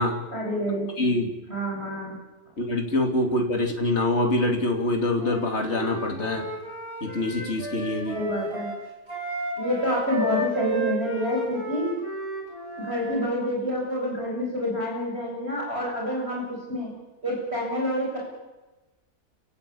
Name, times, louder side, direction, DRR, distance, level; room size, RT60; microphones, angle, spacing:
voice 1, 0.3-0.9 1.5-2.1 8.1-8.7 9.6-11.9 12.8-16.4 16.7-16.9 17.2-18.2, equal, 40° right, -2 dB, 8.4 m, -28 dB
voice 2, 1.0-1.3 2.6-6.5 7.0-8.2, left 1 dB, 45° left, 2 dB, 3.3 m, -25 dB
Wind instrument woodwind instrument, 5.2-13.2, right 1 dB, 70° right, 6.6 m, -32 dB
29.5 x 17.0 x 8.7 m, 1.1 s
omnidirectional pair, 1.6 m